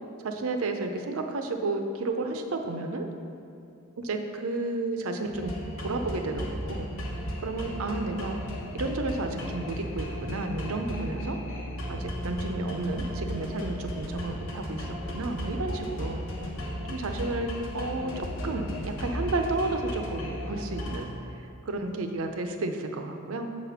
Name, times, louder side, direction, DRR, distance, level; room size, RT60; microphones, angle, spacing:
voice 1, 0.2-3.1 4.0-5.5 5.8-6.9 7.4-8.4 8.7-11.4 11.9-16.2 16.8-21.1 21.7-23.5, right 2 dB, 70° right, 5 dB, 0.6 m, -32 dB
sound 1, 5.3-21.0, equal, 65° left, 1.1 m, -35 dB
7.9 x 4.1 x 5.7 m, 2.6 s
head